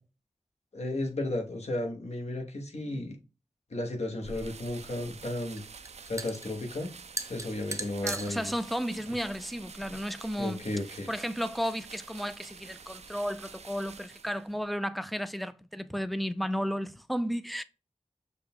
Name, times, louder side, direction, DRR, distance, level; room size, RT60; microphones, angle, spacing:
voice 1, 0.7-3.2 3.7-5.6 6.1-6.9 7.3-8.5 10.4-11.1, left 1 dB, 60° left, 1.1 m, -34 dB
sound 1, 4.2-10.4, right 2 dB, 25° right, 0.7 m, -41 dB
sound 2, 4.2-14.6, right 5 dB, 60° right, 0.4 m, -49 dB
voice 2, 8.0-10.6 11.1-17.6, equal, ahead, 0.4 m, -33 dB
6.4 x 2.3 x 3.6 m
cardioid pair, 45°, 12 cm